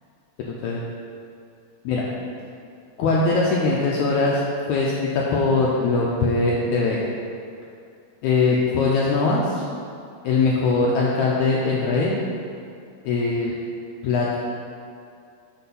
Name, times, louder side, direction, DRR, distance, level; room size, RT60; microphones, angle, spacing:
voice 1, 0.5-0.8 1.8-2.0 3.0-4.4 4.7-7.0 8.2-9.6 10.2-12.2 13.0-13.5 14.0-14.4, left 3 dB, 85° left, -4 dB, 1.7 m, -21 dB
6.9 x 4.0 x 5.4 m, 2.4 s
omnidirectional pair, 4.0 m